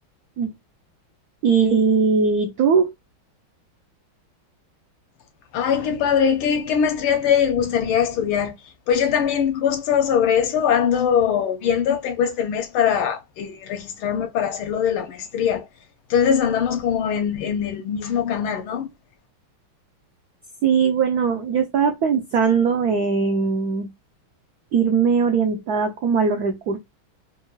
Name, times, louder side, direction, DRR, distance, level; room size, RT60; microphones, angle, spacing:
voice 1, 1.4-2.9 20.6-23.9 24.7-26.8, right 5 dB, 80° right, 0.8 m, -20 dB
voice 2, 5.5-8.6 8.9-15.7 16.1-18.9, left 8 dB, 85° left, 1.7 m, -21 dB
4.6 x 2.3 x 3.1 m
omnidirectional pair, 2.3 m